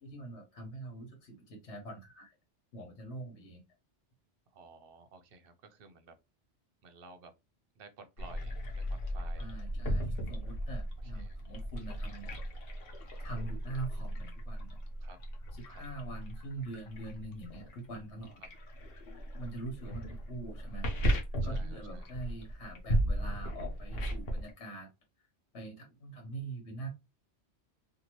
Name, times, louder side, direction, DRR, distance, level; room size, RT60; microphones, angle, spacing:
voice 1, 0.0-2.3 2.7-3.6 9.4-12.3 13.2-14.8 15.5-18.4 19.4-20.9 21.4-24.9 25.5-26.9, right 2 dB, 75° left, 1.3 m, -44 dB
voice 2, 4.5-6.2 6.8-7.3 7.8-9.5 11.0-11.4 15.0-15.2 15.7-15.8 21.4-22.1, right 4 dB, 60° right, 0.7 m, -54 dB
sound 1, 8.2-24.5, right 1 dB, 60° left, 0.9 m, -36 dB
2.8 x 2.4 x 2.9 m
omnidirectional pair, 1.2 m